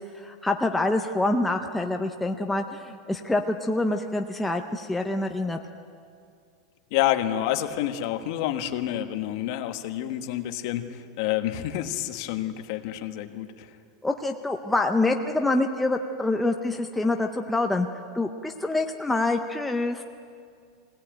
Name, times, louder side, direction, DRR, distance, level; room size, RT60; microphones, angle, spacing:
voice 1, 0.0-5.6 14.0-17.9 18.1-20.0, left 2 dB, 5° left, 3 dB, 0.6 m, -26 dB
voice 2, 6.9-13.7, left 12 dB, 45° left, 8 dB, 1.2 m, -28 dB
22.5 x 17.5 x 8.9 m, 2.3 s
supercardioid pair, 175°, 3 cm